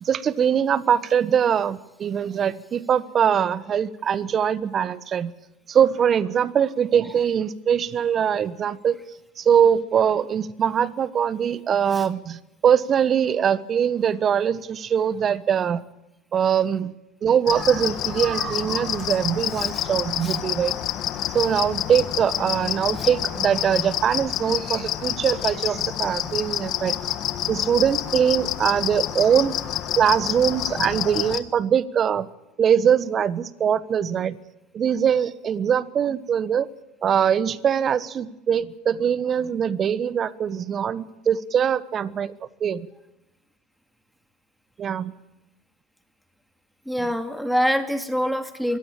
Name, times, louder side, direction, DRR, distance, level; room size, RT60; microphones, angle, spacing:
voice 1, 0.0-5.3 5.7-9.0 9.4-15.8 16.3-16.9 17.2-20.7 21.3-27.1 27.5-29.6 30.0-32.3 32.6-34.4 34.7-36.7 37.0-42.3 42.6-42.9 44.8-45.1, right 8 dB, 35° right, 17 dB, 1.2 m, -22 dB
sound 1, 17.5-31.4, left 12 dB, 45° left, 1.7 m, -28 dB
voice 2, 46.9-48.8, equal, ahead, 7 dB, 2.4 m, -25 dB
23.5 x 16.5 x 8.9 m, 0.94 s
hypercardioid pair, 80°, 0 cm